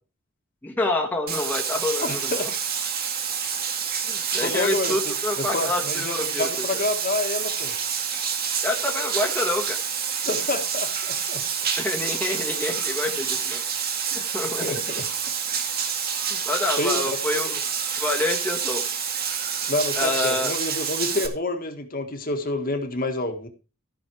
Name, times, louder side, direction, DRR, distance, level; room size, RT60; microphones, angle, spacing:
voice 1, 0.6-2.5 4.1-6.6 8.6-9.8 11.8-13.6 14.1-14.8 16.3-17.6 18.0-18.8 20.0-20.5, left 2 dB, 10° left, 0 dB, 1.5 m, -27 dB
Bathtub (filling or washing), 1.3-21.3, right 7 dB, 45° right, 1.9 m, -28 dB
voice 2, 2.0-2.5 4.4-7.7 10.2-11.4 14.6-15.0 16.8-17.0 19.7-23.5, left 2 dB, 45° left, 6 dB, 1.6 m, -28 dB
14.5 x 6.3 x 4.7 m, 0.32 s
head